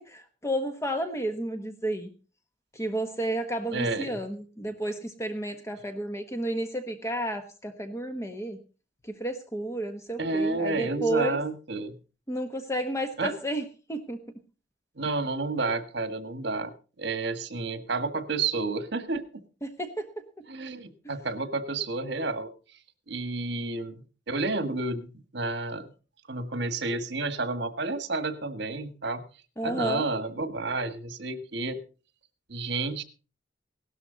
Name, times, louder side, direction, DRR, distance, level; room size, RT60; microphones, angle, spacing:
voice 1, 0.1-2.1 2.7-8.6 9.1-11.4 12.3-13.6 13.9-14.2 19.6-20.1 29.6-30.0, right 1 dB, 15° left, 7 dB, 1.1 m, -31 dB
voice 2, 3.7-4.2 10.2-12.0 13.2-13.3 15.0-19.2 20.5-22.5 23.1-25.1 25.3-25.9 26.3-29.2 29.6-31.8 32.5-33.0, right 3 dB, 65° right, 10 dB, 1.7 m, -30 dB
17.5 x 12.5 x 4.0 m, 0.35 s
head